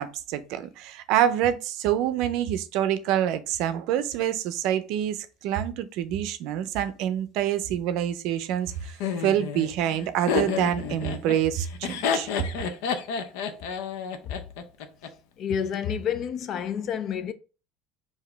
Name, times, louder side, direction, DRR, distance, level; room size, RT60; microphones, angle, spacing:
voice 1, 0.0-12.3, right 11 dB, 60° right, 0.5 m, -26 dB
Laughter, 9.0-15.1, left 6 dB, 75° left, 0.7 m, -30 dB
voice 2, 15.4-17.3, left 8 dB, 40° left, 0.4 m, -29 dB
4.9 x 2.7 x 3.3 m
cardioid pair, 155°, 0 cm